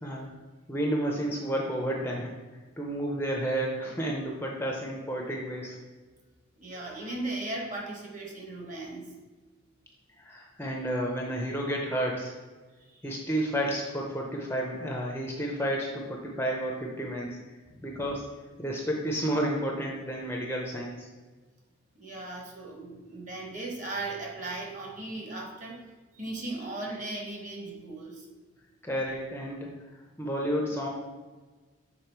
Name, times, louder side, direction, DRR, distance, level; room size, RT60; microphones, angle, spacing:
voice 1, 0.7-2.3 2.8-5.8 10.2-12.3 13.0-17.4 17.8-18.2 18.6-21.1 28.8-29.7 30.2-30.9, right 1 dB, 10° left, -1 dB, 0.6 m, -31 dB
voice 2, 6.6-9.1 12.8-13.0 17.7-18.0 21.9-25.8 26.1-28.3, right 2 dB, 35° right, 0 dB, 1.1 m, -37 dB
6.7 x 3.7 x 4.5 m, 1.3 s
head